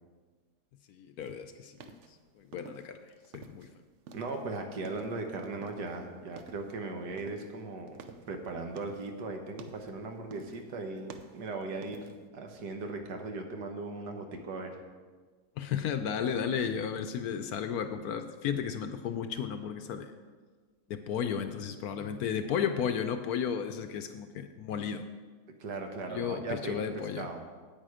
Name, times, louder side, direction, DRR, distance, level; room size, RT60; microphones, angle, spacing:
voice 1, 0.9-1.9 2.4-3.0 3.3-3.7 15.6-20.1 20.9-25.1 26.1-27.3, left 7 dB, 70° left, 8 dB, 1.0 m, -33 dB
sound 1, 1.2-3.7 4.0-6.0 6.3-6.8 7.2-9.2 9.5-10.0 10.3-10.7 11.0-12.3, right 5 dB, 60° right, 0.8 m, -50 dB
voice 2, 4.1-8.0 8.3-14.8 25.6-26.9 27.2-27.5, right 3 dB, 80° right, 4 dB, 1.7 m, -38 dB
9.1 x 8.8 x 4.9 m, 1.5 s
omnidirectional pair, 1.8 m